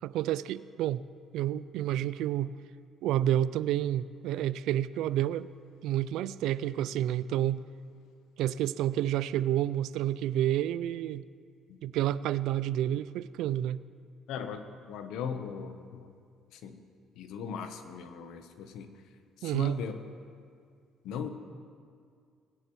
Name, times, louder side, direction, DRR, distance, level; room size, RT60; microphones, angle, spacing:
voice 1, 0.0-1.0 1.3-2.5 3.0-5.5 5.8-7.6 8.4-11.2 11.8-13.8 19.4-19.8, right 12 dB, 80° right, 17 dB, 0.3 m, -29 dB
voice 2, 14.3-16.1 16.5-16.8 17.2-18.9 19.4-19.9 21.0-21.3, left 7 dB, 80° left, 8 dB, 0.9 m, -38 dB
20.0 x 9.8 x 3.1 m, 2.2 s
cardioid pair, 115°, 0 cm